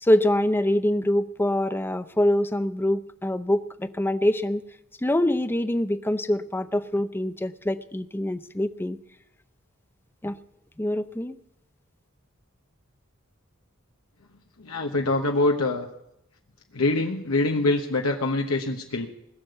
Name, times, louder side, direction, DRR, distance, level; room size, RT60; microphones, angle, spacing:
voice 1, 0.0-4.6 5.0-9.0 10.2-10.4 10.8-11.3, left 1 dB, 10° left, 11 dB, 0.6 m, -24 dB
voice 2, 14.6-15.9 16.7-19.1, left 2 dB, 85° left, 2 dB, 1.2 m, -24 dB
20.5 x 7.0 x 8.0 m, 0.82 s
head